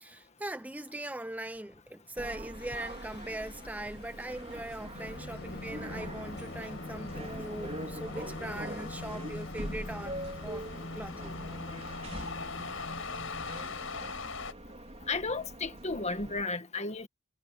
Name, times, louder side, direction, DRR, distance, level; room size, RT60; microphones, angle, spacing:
voice 1, 0.0-11.4, right 1 dB, 10° right, 0.8 m, -41 dB
sound 1, 2.2-16.4, right 1 dB, 35° right, 4.7 m, -44 dB
Singing, 2.5-13.9, left 2 dB, 55° left, 1.8 m, -44 dB
sound 2, 4.3-14.5, left 4 dB, 85° left, 5.2 m, -44 dB
voice 2, 15.1-17.1, left 3 dB, 35° left, 1.7 m, -33 dB
head